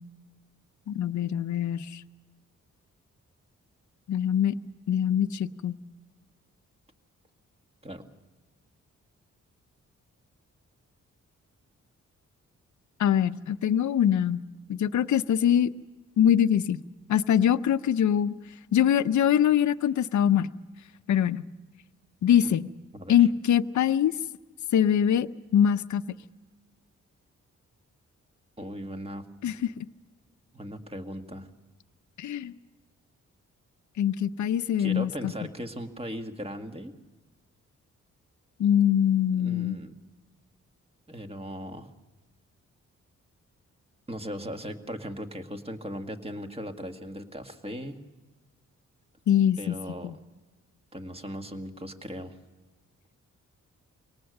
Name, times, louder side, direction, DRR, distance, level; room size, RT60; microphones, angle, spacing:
voice 1, 0.9-2.0 4.1-4.5 4.9-5.8 13.0-14.4 14.7-15.7 16.2-16.8 17.1-18.3 18.7-20.5 21.1-21.4 22.2-22.7 23.1-24.1 24.7-26.0 29.4-29.9 32.2-32.5 34.0-35.3 38.6-39.8 49.3-49.8 50.0-50.1, left 9 dB, 75° left, 12 dB, 0.7 m, -23 dB
voice 2, 22.9-23.3 28.6-29.3 30.5-31.5 34.8-36.9 39.4-39.9 41.1-41.9 44.1-48.0 49.6-50.2 50.9-52.4, equal, 20° right, 5 dB, 2.0 m, -38 dB
23.5 x 19.0 x 6.6 m, 1.2 s
cardioid pair, 70°, 30 cm